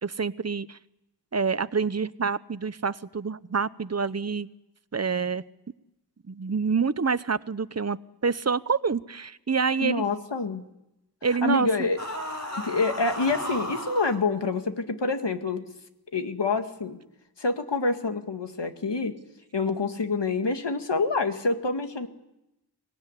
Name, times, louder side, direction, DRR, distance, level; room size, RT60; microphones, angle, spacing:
voice 1, 0.0-0.8 1.3-4.5 4.9-5.4 6.3-10.0 11.2-11.9, right 5 dB, 40° right, 16 dB, 0.8 m, -27 dB
voice 2, 9.8-10.6 11.4-12.0 12.6-15.7 16.1-17.0 17.4-19.2 19.5-22.1, left 3 dB, 85° left, 6 dB, 2.1 m, -27 dB
sound 1, 12.0-14.2, equal, 45° left, 5.7 m, -34 dB
25.5 x 19.0 x 9.9 m, 0.91 s
wide cardioid pair, 65°, 41 cm